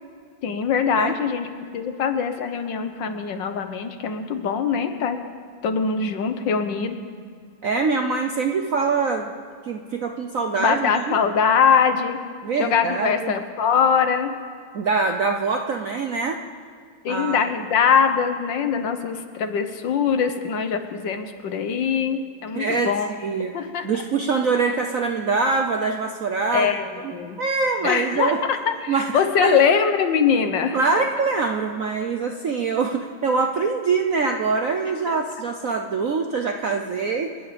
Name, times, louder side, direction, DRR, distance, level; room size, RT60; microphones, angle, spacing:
voice 1, 0.4-1.5 1.7-5.2 5.6-7.0 10.6-12.2 12.6-14.3 17.0-23.1 23.5-23.9 26.5-27.4 27.8-30.8 35.1-35.2, left 6 dB, 65° left, 7 dB, 1.6 m, -22 dB
voice 2, 7.6-9.3 9.6-11.2 12.4-13.3 14.7-16.4 17.1-17.5 22.5-22.9 23.2-23.5 23.8-26.8 27.0-27.1 27.4-28.4 28.9-29.1 29.4-29.6 30.7-37.3, right 4 dB, 60° right, 4 dB, 0.9 m, -24 dB
27.0 x 10.0 x 5.1 m, 2.2 s
omnidirectional pair, 2.3 m